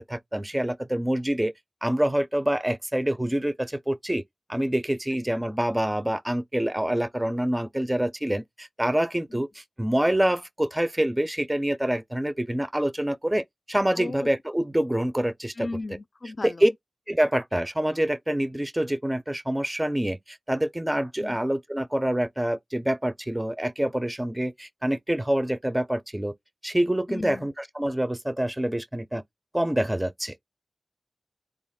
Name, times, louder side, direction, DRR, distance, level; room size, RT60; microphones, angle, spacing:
voice 1, 0.1-1.5 1.8-4.2 4.5-15.7 16.4-16.7 17.1-26.3 26.6-29.2 29.5-30.3, right 1 dB, 15° right, 0.4 m, -26 dB
voice 2, 13.9-14.3 15.6-16.6 21.2-21.4 27.1-27.5, left 2 dB, 60° left, 0.3 m, -35 dB
3.7 x 2.3 x 3.4 m
cardioid pair, 45°, 0 cm